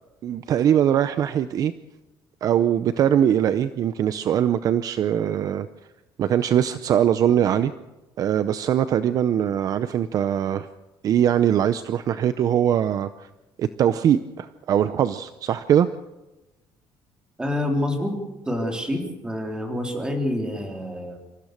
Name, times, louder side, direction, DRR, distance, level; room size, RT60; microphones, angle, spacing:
voice 1, 0.2-1.7 2.4-5.7 6.2-7.7 8.2-10.7 11.0-13.3 13.6-15.9, right 10 dB, 45° right, 12 dB, 0.6 m, -21 dB
voice 2, 17.4-18.2 18.5-21.2, left 1 dB, 10° right, 2 dB, 3.6 m, -27 dB
27.0 x 15.5 x 6.6 m, 1.1 s
cardioid pair, 165°, 9 cm